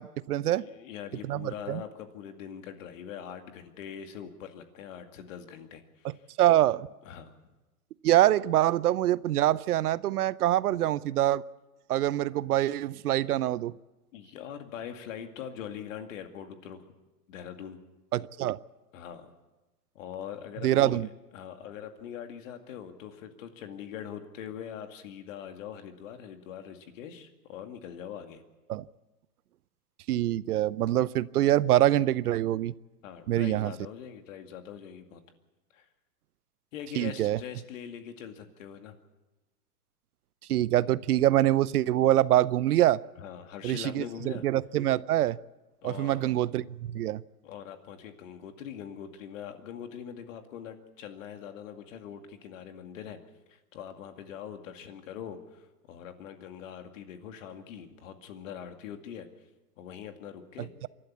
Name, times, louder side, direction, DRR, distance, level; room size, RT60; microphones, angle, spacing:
voice 1, 0.0-0.6 1.3-1.8 6.0-6.1 6.4-6.9 8.0-11.4 11.9-13.7 18.1-18.6 20.6-21.1 28.7-28.8 30.1-32.7 33.3-33.7 37.0-37.4 40.5-43.0 43.6-45.4 45.8-47.2, right 13 dB, 70° right, 19 dB, 0.7 m, -25 dB
voice 2, 0.6-6.2 7.0-7.3 14.1-16.8 17.3-17.8 18.9-19.3 19.9-28.4 33.0-35.2 35.7-35.9 36.7-38.9 43.2-44.5 45.8-46.3 47.4-53.2 53.5-59.3 59.8-60.7, left 9 dB, 55° left, 6 dB, 2.3 m, -42 dB
27.0 x 12.0 x 8.3 m, 1.1 s
hypercardioid pair, 135°, 48 cm